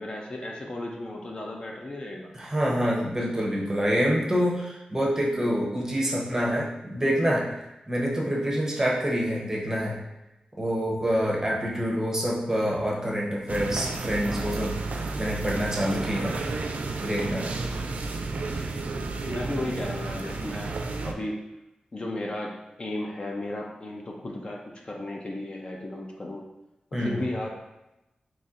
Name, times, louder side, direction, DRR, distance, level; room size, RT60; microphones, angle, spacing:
voice 1, 0.0-2.3 19.3-20.7 21.0-21.4 21.9-26.5 26.9-27.5, left 1 dB, 40° left, 0 dB, 0.5 m, -34 dB
voice 2, 2.3-7.5 7.9-10.0 10.6-14.8 15.2-16.4 17.0-17.6 26.9-27.2, equal, 20° right, -3 dB, 0.8 m, -26 dB
sound 1, 13.5-21.1, right 3 dB, 75° right, 0.3 m, -32 dB
4.1 x 3.0 x 2.5 m, 0.95 s
wide cardioid pair, 110°, 3 cm